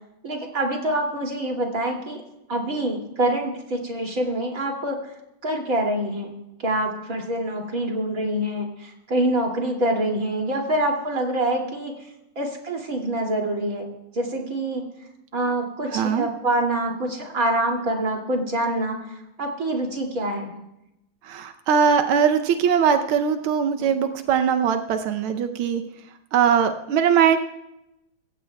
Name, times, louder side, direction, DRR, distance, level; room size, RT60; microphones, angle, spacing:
voice 1, 0.2-2.2 2.5-5.0 5.4-6.3 6.6-11.9 12.4-13.8 14.1-14.8 15.3-19.0 19.4-20.5, right 1 dB, 40° right, 1 dB, 3.1 m, -25 dB
voice 2, 15.9-16.3 21.2-25.8 26.3-27.4, right 7 dB, 85° right, 7 dB, 1.7 m, -21 dB
26.5 x 15.0 x 2.3 m, 0.88 s
omnidirectional pair, 2.3 m